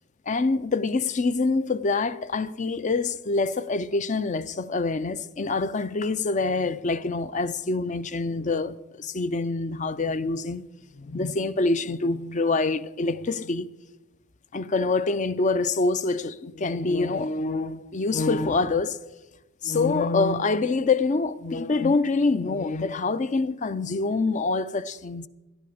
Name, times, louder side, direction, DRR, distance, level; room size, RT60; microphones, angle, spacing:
voice 1, 0.3-10.6 11.0-13.7 14.5-19.0 19.6-25.3, left 3 dB, 35° left, 0.5 m, -25 dB
17.5 x 12.5 x 5.0 m
head